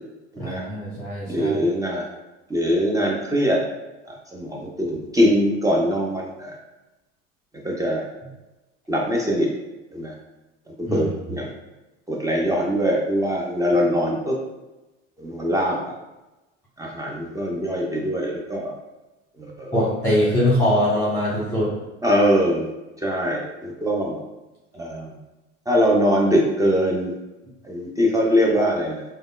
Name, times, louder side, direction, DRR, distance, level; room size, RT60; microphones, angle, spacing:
voice 1, 0.4-1.6 10.8-11.1 19.7-21.7, left 1 dB, 5° left, -8 dB, 1.0 m, -22 dB
voice 2, 1.3-2.1 2.5-3.6 4.1-6.6 7.5-8.0 8.9-9.5 9.9-10.1 10.8-11.5 12.1-14.4 15.2-15.8 16.8-18.7 19.4-19.8 22.0-22.7 23.0-24.2 24.7-25.2 25.7-27.1 27.6-29.0, equal, 10° right, -2 dB, 0.5 m, -22 dB
3.4 x 2.2 x 2.3 m, 1.0 s
hypercardioid pair, 70°, 37 cm